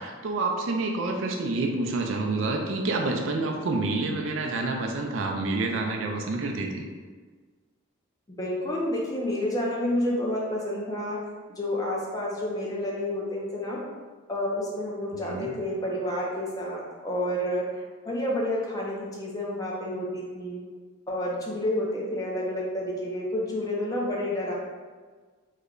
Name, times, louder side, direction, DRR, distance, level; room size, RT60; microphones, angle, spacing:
voice 1, 0.0-6.8 15.1-15.6, right 3 dB, 65° right, 2 dB, 0.4 m, -28 dB
voice 2, 8.4-11.2 11.6-13.8 14.3-20.6 21.1-24.5, left 1 dB, 15° left, -4 dB, 0.5 m, -29 dB
3.1 x 2.2 x 3.7 m, 1.5 s
head